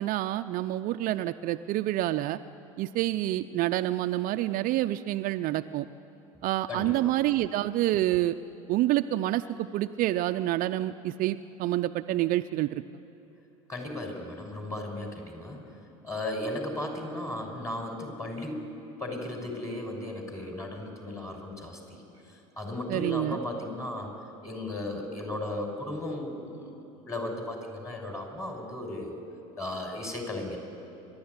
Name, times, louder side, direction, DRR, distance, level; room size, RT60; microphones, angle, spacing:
voice 1, 0.0-2.4 2.8-5.9 6.4-8.3 8.7-12.8 22.9-23.4, right 15 dB, 50° right, 9 dB, 0.6 m, -28 dB
voice 2, 6.7-7.1 13.7-15.6 16.0-18.7 19.0-22.0 22.6-24.1 24.4-26.8 27.0-29.2 29.6-30.6, left 1 dB, 15° left, 2 dB, 6.2 m, -35 dB
29.0 x 12.5 x 9.7 m, 2.8 s
hypercardioid pair, 80°, 18 cm